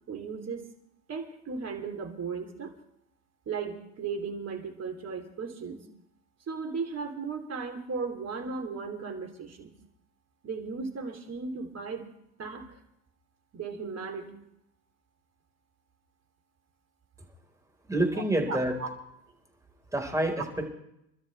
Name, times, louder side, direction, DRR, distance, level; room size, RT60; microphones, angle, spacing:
voice 1, 0.1-0.6 1.1-2.7 3.4-5.8 6.5-9.7 10.4-12.1 12.4-12.8 13.5-14.3 18.5-18.9, right 5 dB, 35° right, 4 dB, 3.5 m, -36 dB
voice 2, 17.9-18.7 19.9-20.7, right 1 dB, 5° right, 2 dB, 4.5 m, -27 dB
27.5 x 13.0 x 3.4 m, 0.79 s
hypercardioid pair, 75°, 43 cm